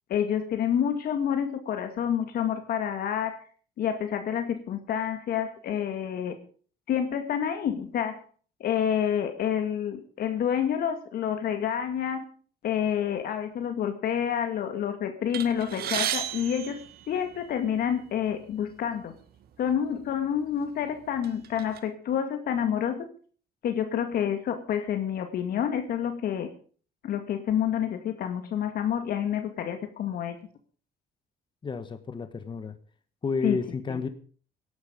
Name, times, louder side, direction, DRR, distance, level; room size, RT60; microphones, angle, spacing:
voice 1, 0.1-3.4 3.8-6.4 6.9-8.2 8.6-12.2 12.6-19.1 19.6-23.1 23.6-26.5 27.0-30.4 33.4-33.6 33.9-34.0, left 9 dB, 65° left, 7 dB, 2.0 m, -28 dB
sound 1, 15.3-17.7 18.5-18.6 19.0-19.1 20.0-20.1 20.6-21.8, right 11 dB, 65° right, 1.8 m, -34 dB
voice 2, 31.6-32.7 33.2-34.1, left 4 dB, 30° left, 10 dB, 1.4 m, -31 dB
17.0 x 11.5 x 5.2 m, 0.43 s
cardioid pair, 110°, 17 cm